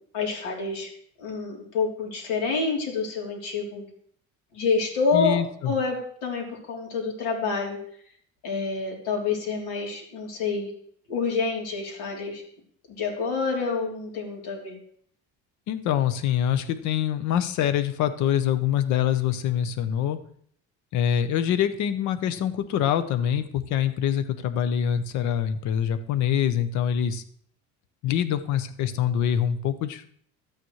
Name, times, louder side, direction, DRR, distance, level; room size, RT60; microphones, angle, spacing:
voice 1, 0.1-0.9 1.2-3.8 4.5-5.4 5.6-7.8 8.4-10.7 11.1-12.4 13.0-14.7, left 4 dB, 90° left, -1 dB, 3.4 m, -27 dB
voice 2, 5.1-5.7 15.7-20.2 20.9-27.2 28.0-30.1, left 9 dB, 65° left, 11 dB, 0.9 m, -25 dB
13.5 x 8.9 x 3.2 m, 0.62 s
cardioid pair, 155°, 31 cm